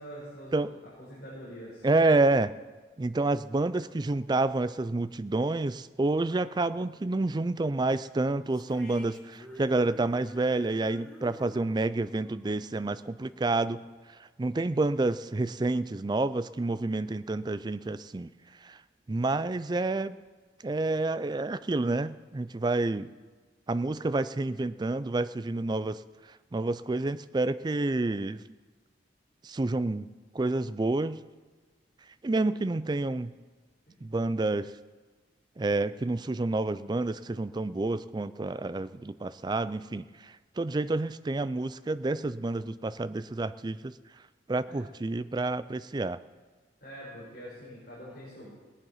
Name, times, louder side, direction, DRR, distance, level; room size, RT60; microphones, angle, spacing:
voice 1, 0.0-1.9 33.9-34.0 44.7-44.8 46.8-48.5, equal, 55° left, -7 dB, 4.7 m, -45 dB
voice 2, 1.8-2.5 3.0-13.8 14.4-18.3 18.6-18.8 19.1-20.2 20.6-23.1 23.7-26.0 26.5-28.4 29.4-30.1 30.3-31.3 32.2-33.3 34.0-34.7 35.6-43.9 44.5-46.2, right 2 dB, 25° right, 15 dB, 0.4 m, -29 dB
sound 1, 8.5-13.9, equal, 5° left, 2.0 m, -51 dB
18.0 x 10.5 x 5.7 m, 1.3 s
head